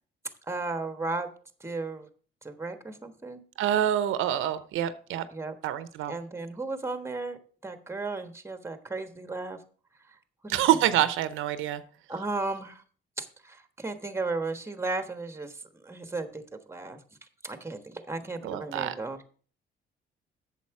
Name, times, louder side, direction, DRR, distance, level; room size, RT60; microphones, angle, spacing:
voice 1, 0.5-1.3 1.6-2.1 2.4-3.4 5.3-5.6 6.1-9.6 10.4-10.6 12.1-12.8 13.2-16.4 16.7-17.0 17.4-19.3, right 3 dB, 15° right, 9 dB, 1.2 m, -35 dB
voice 2, 3.6-5.3 5.6-6.1 10.5-11.8 18.4-18.9, right 11 dB, 90° right, 13 dB, 0.7 m, -26 dB
8.3 x 7.1 x 4.7 m, 0.42 s
cardioid pair, 90°, 20 cm